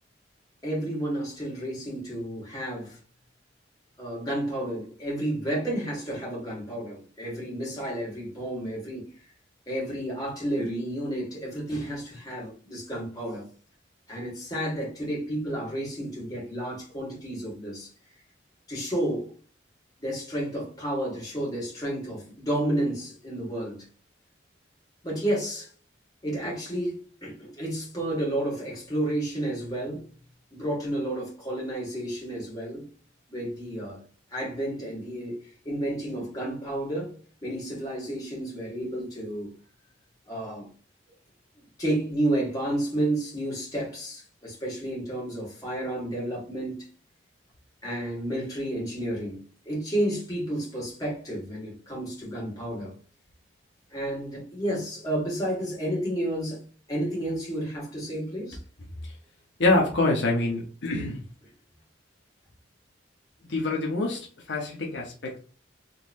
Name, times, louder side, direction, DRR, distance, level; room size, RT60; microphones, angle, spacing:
voice 1, 0.6-3.0 4.0-9.0 9.7-13.5 14.1-17.9 18.7-19.3 20.0-23.8 25.0-25.7 26.2-27.0 27.2-30.0 30.5-32.9 33.3-34.0 34.3-37.1 37.4-39.5 40.3-40.7 41.8-46.8 47.8-52.9 53.9-56.6 56.9-58.6, right 1 dB, 20° left, 1.9 m, -31 dB
voice 2, 59.6-61.2 63.5-65.4, left 2 dB, 65° left, 0.9 m, -25 dB
3.9 x 3.0 x 2.6 m
head